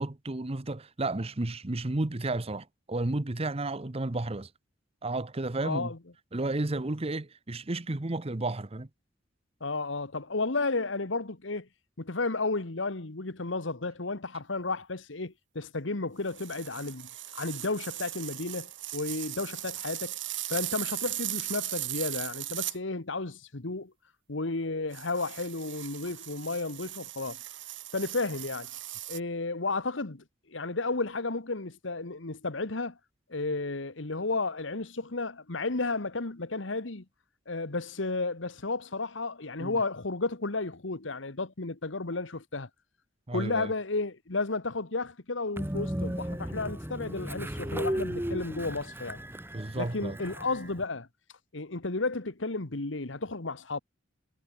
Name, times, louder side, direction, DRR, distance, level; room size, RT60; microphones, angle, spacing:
voice 1, 0.0-4.5 5.0-5.9 6.3-8.9 39.6-39.8 43.3-43.7 49.5-50.2, right 2 dB, 30° right, 1.0 m, -32 dB
voice 2, 5.6-6.0 9.6-11.7 12.0-20.1 20.5-23.9 24.3-27.4 27.9-28.7 29.1-33.0 33.3-37.0 37.5-42.7 43.3-49.2 49.8-51.1 51.5-53.8, left 3 dB, 75° left, 1.5 m, -33 dB
sound 1, 16.3-22.8 24.9-29.2, right 15 dB, 70° right, 6.0 m, -38 dB
Train, 45.6-50.8, equal, 10° right, 1.5 m, -35 dB
head